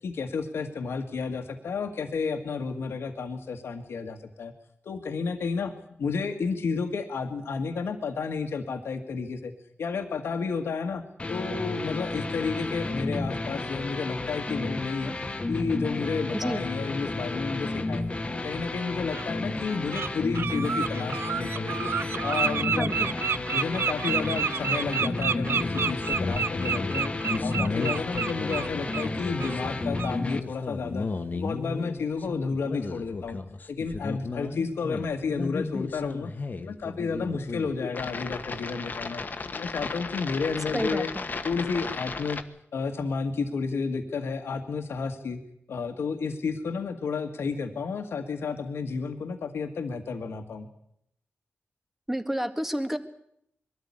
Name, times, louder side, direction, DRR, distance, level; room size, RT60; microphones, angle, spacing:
voice 1, 0.0-4.5 4.9-5.7 6.0-9.5 9.8-11.0 11.3-15.1 15.5-18.1 18.4-21.9 22.2-22.9 23.5-27.1 27.4-31.1 31.3-33.4 33.7-36.3 36.6-39.2 39.5-41.1 41.4-42.4 42.7-45.4 45.7-50.7, left 5 dB, 85° left, 7 dB, 1.8 m, -31 dB
sound 1, 11.2-30.4, left 2 dB, 30° left, 1.5 m, -32 dB
Bird, 18.3-18.4 19.1-19.2 19.7-20.1 20.3-29.1 29.4-29.6 30.0-30.1, right 6 dB, 70° right, 0.7 m, -29 dB
voice 2, 22.8-23.1 40.7-41.2 52.1-53.0, equal, 5° right, 8 dB, 1.9 m, -29 dB
sound 2, 25.4-42.4, left 4 dB, 45° left, 1.4 m, -35 dB
22.0 x 13.5 x 9.8 m, 0.74 s
wide cardioid pair, 85°, 4 cm